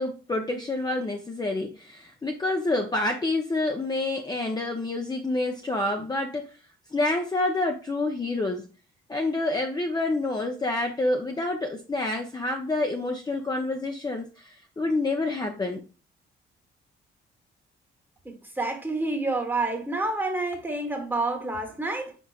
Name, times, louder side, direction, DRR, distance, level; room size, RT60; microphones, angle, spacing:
voice 1, 0.0-6.4 6.9-8.7 9.1-15.8, left 2 dB, 20° left, 0.6 m, -28 dB
voice 2, 18.2-22.2, right 2 dB, 10° right, 1.1 m, -28 dB
5.2 x 3.9 x 2.3 m
cardioid pair, 90°, 20 cm